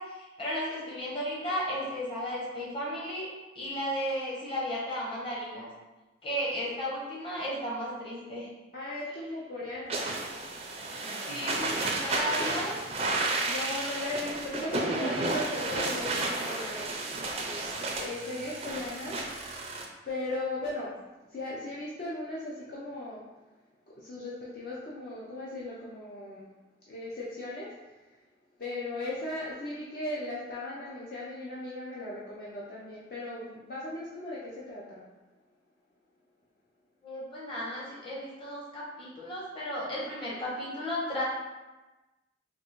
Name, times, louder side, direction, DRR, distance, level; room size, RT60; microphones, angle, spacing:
voice 1, 0.0-3.3 3.5-5.7 6.2-8.5 11.3-12.8 37.0-41.2, equal, 30° left, -6 dB, 1.0 m, -34 dB
voice 2, 8.7-10.3 13.4-16.9 17.9-19.3 20.1-20.9 21.3-23.2 23.9-26.5 26.9-27.7 28.6-35.0, left 2 dB, 50° left, -7 dB, 0.5 m, -37 dB
sound 1, 9.9-19.9, right 2 dB, 35° right, 0.4 m, -32 dB
3.6 x 2.4 x 3.0 m, 1.1 s
head